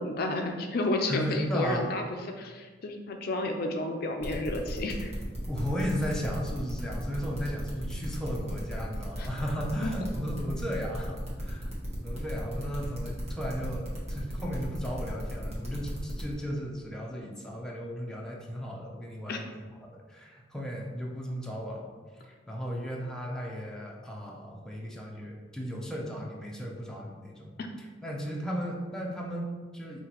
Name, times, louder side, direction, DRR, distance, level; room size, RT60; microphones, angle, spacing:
voice 1, 0.0-2.0 2.4-5.1 9.2-9.3 9.8-9.9 19.3-19.4, left 2 dB, 55° left, 3 dB, 0.4 m, -31 dB
voice 2, 1.1-1.9 5.5-11.7 12.0-19.5 19.8-21.9 22.2-27.6 28.0-30.1, equal, 5° left, -3 dB, 0.6 m, -35 dB
sound 1, 4.2-16.3, equal, 35° right, 1.1 m, -39 dB
5.6 x 2.8 x 2.9 m, 1.4 s
head